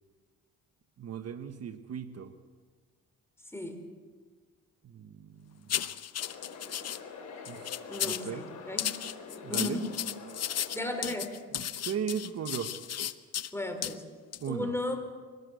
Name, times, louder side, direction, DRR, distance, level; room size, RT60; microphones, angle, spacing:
voice 1, 1.0-2.3 4.8-5.5 7.5-8.4 9.4-9.8 11.5-12.7 14.4-14.8, right 8 dB, 55° right, 8 dB, 1.3 m, -37 dB
sound 1, 5.7-7.0 7.4-8.3 8.8-13.5 13.8-13.9 14.3-14.5, left 10 dB, 55° left, 0.9 m, -34 dB
sound 2, 6.2-11.2, left 5 dB, 75° left, 6.0 m, -46 dB
voice 2, 7.9-8.8 9.5-9.8 10.7-11.3 13.5-14.0 14.5-15.0, left 2 dB, 10° left, 6 dB, 4.4 m, -34 dB
23.5 x 19.0 x 8.2 m, 1.5 s
cardioid pair, 90°, 30 cm